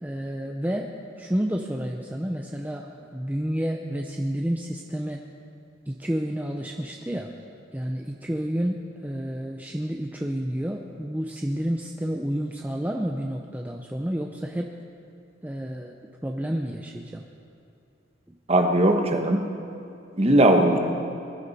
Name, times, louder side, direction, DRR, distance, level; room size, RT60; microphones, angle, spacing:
voice 1, 0.0-5.3 5.9-7.3 7.7-14.7 15.4-15.9 16.2-17.2, equal, 10° right, 1 dB, 0.5 m, -30 dB
voice 2, 18.5-19.4 20.1-20.8, right 1 dB, 30° right, 4 dB, 1.1 m, -19 dB
21.0 x 13.0 x 4.2 m, 2.7 s
head